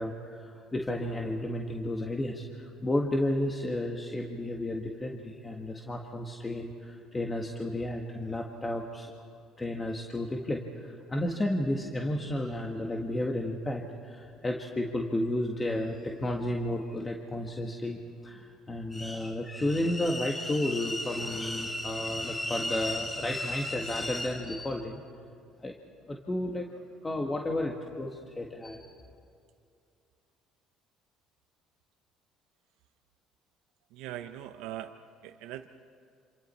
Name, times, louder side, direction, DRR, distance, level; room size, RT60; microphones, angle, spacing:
voice 1, 0.0-9.3 9.6-25.0 25.6-25.8 26.1-26.7 27.0-29.0, left 1 dB, 20° left, 1 dB, 1.8 m, -32 dB
voice 2, 33.9-35.7, right 12 dB, 80° right, 7 dB, 0.8 m, -41 dB
27.5 x 27.0 x 4.4 m, 2.4 s
supercardioid pair, 90°, 0 cm